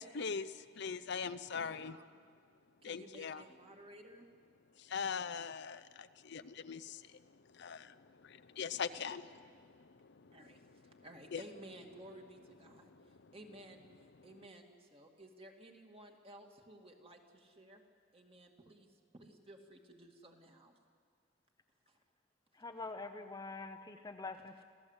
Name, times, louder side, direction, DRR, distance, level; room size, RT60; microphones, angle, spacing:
voice 1, 0.0-2.0 2.8-3.4 4.8-10.5 10.9-11.0 11.3-11.4, left 6 dB, 60° left, 13 dB, 0.6 m, -42 dB
voice 2, 1.5-2.2 2.8-4.3 8.7-9.1 9.4-9.5 10.3-17.8 18.1-20.7 21.9-22.0, right 1 dB, 30° right, 3 dB, 2.2 m, -56 dB
voice 3, 22.5-24.7, left 3 dB, 20° left, 6 dB, 0.7 m, -45 dB
26.5 x 15.5 x 8.1 m, 2.1 s
head